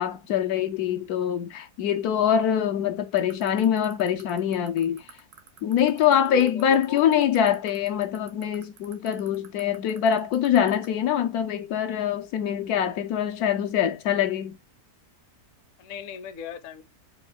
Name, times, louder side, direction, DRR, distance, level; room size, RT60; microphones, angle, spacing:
voice 1, 0.0-5.0 5.6-14.6, left 9 dB, 85° left, 1.1 m, -24 dB
sound 1, 3.2-10.8, right 8 dB, 80° right, 1.5 m, -46 dB
voice 2, 5.9-7.3 15.8-16.8, left 8 dB, 60° left, 1.0 m, -39 dB
5.1 x 2.4 x 3.9 m
omnidirectional pair, 1.6 m